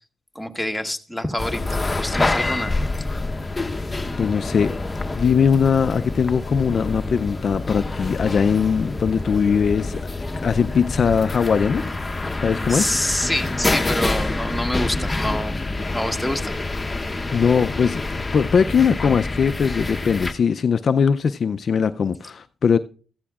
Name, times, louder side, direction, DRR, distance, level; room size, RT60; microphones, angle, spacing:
voice 1, 0.3-2.8 12.7-16.5, left 1 dB, ahead, 1.3 m, -27 dB
sound 1, 1.4-20.3, left 2 dB, 20° left, 0.9 m, -27 dB
voice 2, 4.2-4.7 5.1-10.0 10.4-11.8 12.4-12.9 17.3-22.8, left 6 dB, 55° left, 0.4 m, -20 dB
14.5 x 13.5 x 2.4 m
cardioid pair, 75°, 0 cm